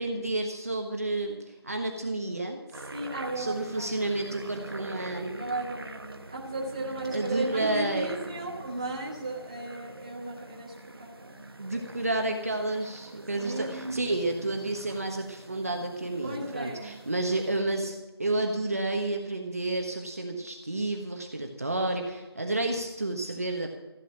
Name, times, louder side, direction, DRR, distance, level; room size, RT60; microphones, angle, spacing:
voice 1, 0.0-2.6 3.4-5.4 7.1-8.1 11.6-23.8, right 2 dB, 35° right, 2 dB, 1.3 m, -30 dB
sound 1, 2.7-17.6, right 2 dB, 65° right, 1.1 m, -45 dB
voice 2, 2.9-3.9 4.4-4.6 5.3-11.4 13.4-14.0 16.2-17.0, right 2 dB, 15° right, -4 dB, 1.5 m, -35 dB
15.0 x 8.5 x 7.2 m, 1.1 s
figure-of-eight pair, 180°, 14 cm